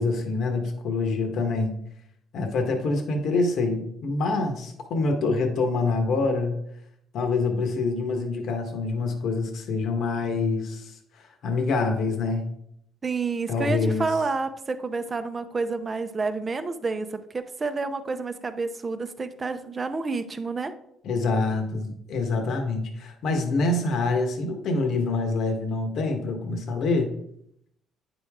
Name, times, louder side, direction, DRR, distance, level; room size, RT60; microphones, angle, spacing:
voice 1, 0.0-1.7 2.3-6.6 7.1-12.4 13.5-14.1 21.0-27.1, left 3 dB, 60° left, 4 dB, 1.3 m, -26 dB
voice 2, 13.0-20.7, right 4 dB, 25° right, 9 dB, 0.7 m, -29 dB
9.1 x 5.2 x 3.6 m, 0.73 s
cardioid pair, 105°, 0 cm